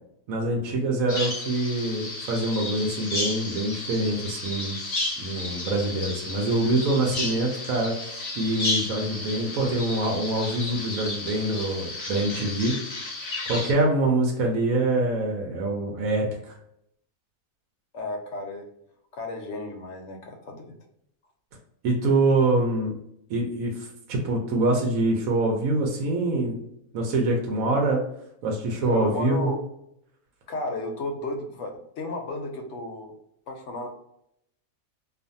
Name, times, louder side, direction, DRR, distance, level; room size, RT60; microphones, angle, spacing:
voice 1, 0.3-4.8 5.2-7.9 8.4-12.8 13.5-16.5 21.8-22.9 23.3-26.6 26.9-28.0 28.4-29.5, right 2 dB, 80° right, 0 dB, 1.1 m, -25 dB
Bird vocalization bird call bird song, 1.1-13.7, left 2 dB, 90° left, 0.3 m, -33 dB
voice 2, 17.9-18.7 19.1-20.8 28.8-29.6 30.5-33.1 33.5-33.9, left 2 dB, 65° left, 3 dB, 0.8 m, -33 dB
2.5 x 2.4 x 2.6 m, 0.75 s
omnidirectional pair, 1.5 m